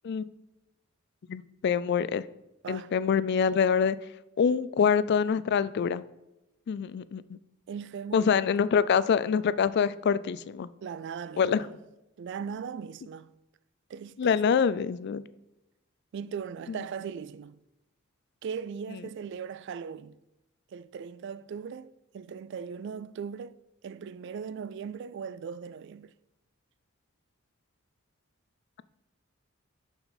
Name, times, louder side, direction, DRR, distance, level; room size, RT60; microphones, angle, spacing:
voice 1, 1.3-2.2 2.7-4.0 4.4-6.0 6.7-7.2 8.1-10.7 11.4-11.6 14.2-15.2 16.7-16.8, left 6 dB, 55° left, 0.3 m, -25 dB
voice 2, 7.7-8.3 10.8-11.7 12.2-13.3 13.9-14.6 16.1-17.6 18.4-20.2 20.7-23.6 23.8-26.1, right 6 dB, 55° right, 0.3 m, -39 dB
6.9 x 5.6 x 4.0 m
head